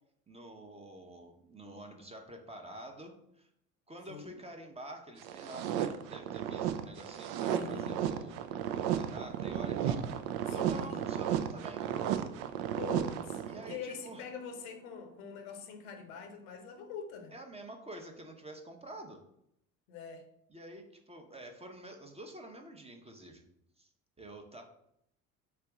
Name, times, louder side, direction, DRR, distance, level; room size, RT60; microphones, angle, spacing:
voice 1, 0.3-3.5 3.9-10.1 10.5-11.9 13.5-14.2 17.3-19.2 20.5-23.4 23.8-23.9 24.2-24.6, right 1 dB, 15° right, 2 dB, 0.7 m, -48 dB
sound 1, 5.2-13.8, right 10 dB, 55° right, 0.5 m, -34 dB
voice 2, 7.5-8.0 10.5-11.0 12.7-17.3 19.9-20.2, left 5 dB, 70° left, 6 dB, 0.9 m, -44 dB
3.4 x 2.9 x 4.6 m, 0.76 s
hypercardioid pair, 65°, 44 cm